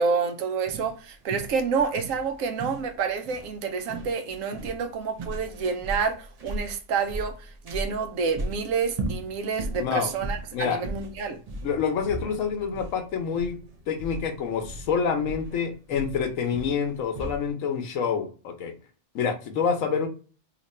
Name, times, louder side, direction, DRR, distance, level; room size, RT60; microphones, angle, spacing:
voice 1, 0.0-11.4, right 5 dB, 80° right, 1.0 m, -28 dB
sound 1, 0.7-17.5, right 2 dB, 55° right, 0.4 m, -37 dB
voice 2, 9.8-10.1 10.5-10.8 11.6-13.6 13.9-18.7 19.1-20.1, left 6 dB, 75° left, 1.0 m, -27 dB
2.9 x 2.5 x 4.1 m
omnidirectional pair, 1.4 m